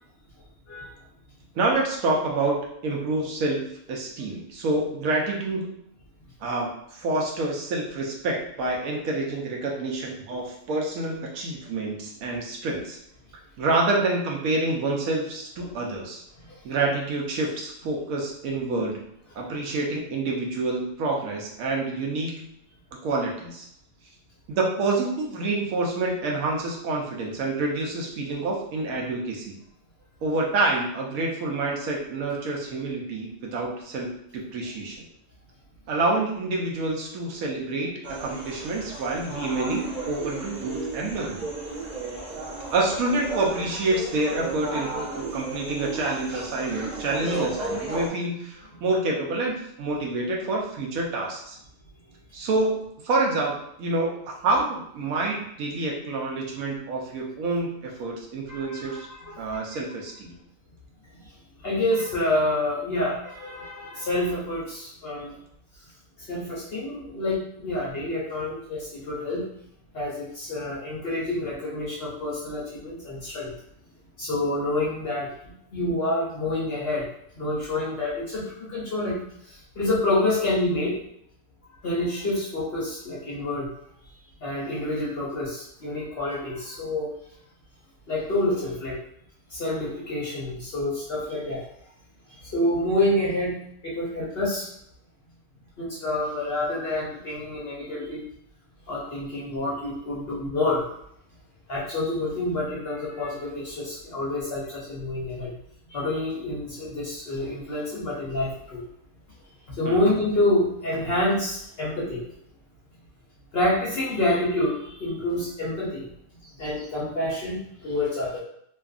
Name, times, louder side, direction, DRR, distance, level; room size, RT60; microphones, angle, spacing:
voice 1, 1.6-5.7 6.4-13.0 13.6-16.2 16.6-19.0 19.3-22.5 22.9-23.7 24.5-29.5 30.2-35.0 35.9-41.5 42.7-51.6 52.3-59.1 59.4-60.3 109.8-110.0, right 2 dB, 75° right, -1 dB, 1.0 m, -27 dB
sound 1, 38.0-48.1, right 2 dB, 50° right, 0.5 m, -34 dB
voice 2, 58.5-59.8 61.1-61.2 61.6-65.3 66.2-69.4 69.9-73.5 74.2-77.1 77.4-79.2 79.5-81.0 81.8-83.7 84.4-87.1 88.1-89.0 89.5-91.6 92.4-93.6 93.8-94.7 95.8-98.2 98.9-100.9 101.7-105.5 105.9-108.8 109.7-112.2 113.5-116.1 116.6-118.4, left 1 dB, 55° left, -6 dB, 0.7 m, -28 dB
2.6 x 2.3 x 2.3 m, 0.73 s
omnidirectional pair, 1.5 m